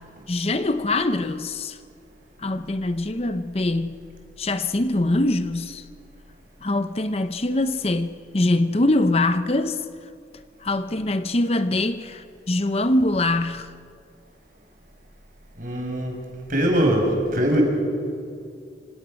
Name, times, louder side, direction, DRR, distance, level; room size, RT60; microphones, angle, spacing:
voice 1, 0.3-1.8 2.4-4.0 4.4-5.8 6.6-9.8 10.6-13.7, left 2 dB, 35° left, 0.8 m, -23 dB
voice 2, 15.6-16.2 16.5-17.6, equal, 50° right, 5.6 m, -21 dB
26.5 x 26.0 x 6.4 m
head